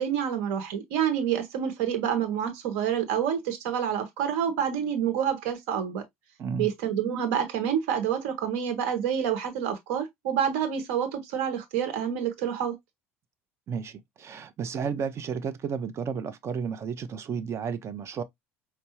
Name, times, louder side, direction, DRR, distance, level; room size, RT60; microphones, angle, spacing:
voice 1, 0.0-6.0 6.6-12.8, right 8 dB, 60° right, 1.0 m, -28 dB
voice 2, 6.4-6.7 13.7-18.2, right 6 dB, 35° right, 0.7 m, -32 dB
5.4 x 2.0 x 2.8 m
figure-of-eight pair, 65°, 8 cm